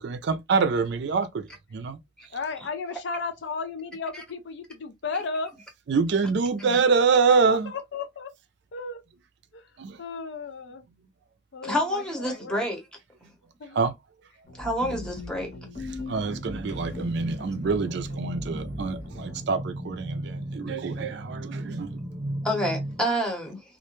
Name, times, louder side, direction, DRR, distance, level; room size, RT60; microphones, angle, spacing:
voice 1, 0.0-2.0 5.9-7.7 9.8-10.0 13.8-13.9 16.1-21.9, right 5 dB, 60° right, 0.4 m, -25 dB
voice 2, 2.3-5.5 7.4-8.3 8.7-9.0 9.5-9.7 10.0-10.8 11.5-12.6 13.6-13.8, left 4 dB, 60° left, 0.4 m, -34 dB
voice 3, 11.6-12.8 14.6-15.5 22.4-23.6, equal, 5° left, 0.8 m, -28 dB
sound 1, 14.4-19.5, left 2 dB, 40° left, 1.0 m, -40 dB
sound 2, 16.3-23.0, right 1 dB, 25° right, 0.9 m, -36 dB
2.4 x 2.1 x 2.9 m
head